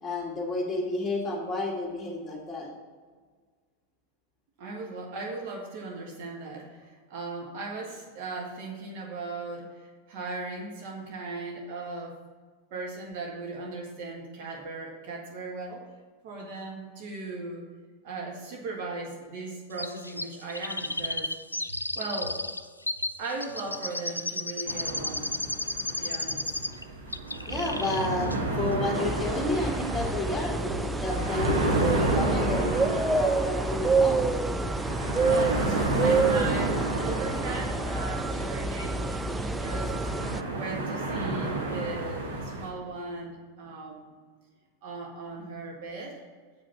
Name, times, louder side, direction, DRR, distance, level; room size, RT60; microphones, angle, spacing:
voice 1, 0.0-2.7 27.5-34.3, left 2 dB, 10° left, -4 dB, 2.5 m, -31 dB
voice 2, 4.6-12.1 12.7-15.9 16.2-17.6 18.0-21.3 21.7-22.4 23.2-25.3 25.8-26.5 35.0-40.1 40.5-44.1 44.8-46.2, right 3 dB, 45° right, -1 dB, 1.6 m, -38 dB
Chirp tweet, 19.8-26.8 27.1-28.1 28.3-28.4, left 1 dB, 85° left, 0.3 m, -33 dB
sound 1, 24.7-42.7, right 2 dB, 60° right, 1.6 m, -32 dB
sound 2, 28.9-40.4, right 3 dB, 10° right, 0.4 m, -28 dB
7.9 x 5.2 x 6.9 m, 1.5 s
figure-of-eight pair, 90°, 0 cm